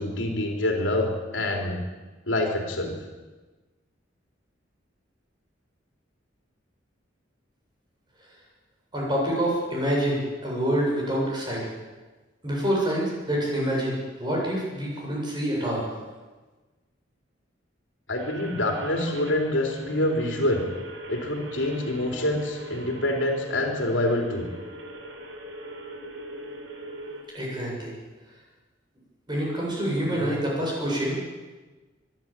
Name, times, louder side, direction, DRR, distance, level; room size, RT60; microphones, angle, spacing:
voice 1, 0.0-1.8 2.3-3.0 18.1-20.6 21.1-24.5 30.2-30.3, left 1 dB, 75° left, 2 dB, 3.6 m, -26 dB
voice 2, 8.9-11.7 12.4-16.0 27.3-27.9 29.3-31.2, right 1 dB, 25° right, -3 dB, 7.8 m, -27 dB
sound 1, 18.2-27.2, right 1 dB, 85° right, 4.4 m, -40 dB
24.0 x 12.0 x 9.0 m, 1.2 s
head